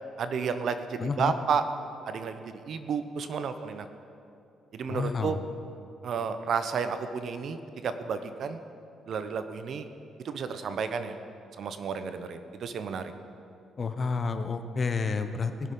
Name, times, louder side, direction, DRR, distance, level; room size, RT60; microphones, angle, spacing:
voice 1, 0.2-1.6 2.0-3.9 4.7-5.4 6.0-8.6 9.1-9.9 10.2-11.2 11.6-13.1, right 6 dB, 60° right, 10 dB, 0.8 m, -32 dB
voice 2, 1.0-1.3 4.9-5.4 13.8-15.7, left 4 dB, 40° left, 9 dB, 0.9 m, -30 dB
19.5 x 6.6 x 5.4 m, 2.6 s
cardioid pair, 90°, 0 cm